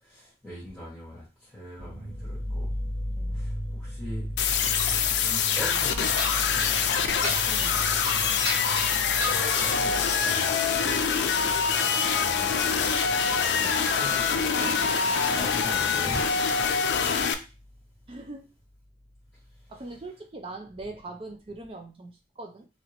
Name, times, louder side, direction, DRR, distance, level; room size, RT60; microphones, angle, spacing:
voice 1, 0.0-2.7 3.3-4.2 5.2-6.2 6.5-6.8 9.6-10.8 12.0-13.0 13.3-17.2, left 1 dB, 5° left, -9 dB, 1.2 m, -41 dB
sound 1, 1.8-16.9 17.1-18.3 18.6-18.7 19.1-19.7, equal, 80° right, 1.2 m, -38 dB
sound 2, 4.4-17.3, left 6 dB, 80° left, 0.4 m, -25 dB
sound 3, 6.0-16.6, right 1 dB, 65° right, 1.0 m, -37 dB
voice 2, 7.2-7.9 18.1-18.5 19.7-22.7, right 2 dB, 30° right, 3 dB, 0.4 m, -41 dB
2.9 x 2.8 x 2.9 m, 0.30 s
head